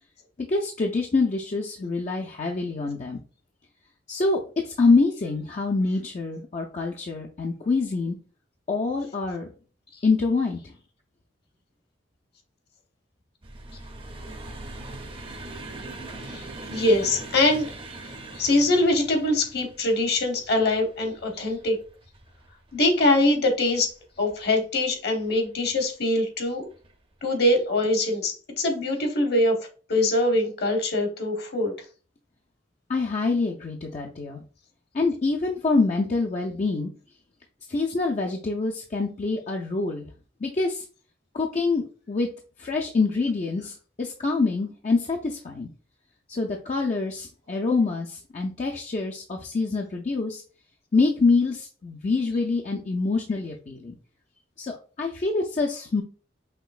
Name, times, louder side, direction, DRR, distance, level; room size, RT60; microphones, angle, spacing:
voice 1, 0.5-3.2 4.1-8.2 8.7-9.5 10.0-10.7 32.9-34.4 34.9-36.9 37.7-40.1 40.4-40.8 41.3-42.3 42.6-45.7 46.3-50.4 50.9-53.9 54.6-56.0, left 3 dB, 40° left, 0 dB, 0.4 m, -25 dB
sound 1, 13.4-24.5 25.2-25.8 26.7-26.9 27.2-27.4, right 2 dB, 30° right, 0.6 m, -42 dB
voice 2, 16.3-17.7 18.0-21.8 22.7-23.9 24.2-26.6 27.2-29.6 29.9-31.7, left 1 dB, 55° left, 3 dB, 1.1 m, -23 dB
5.8 x 3.0 x 2.4 m, 0.38 s
head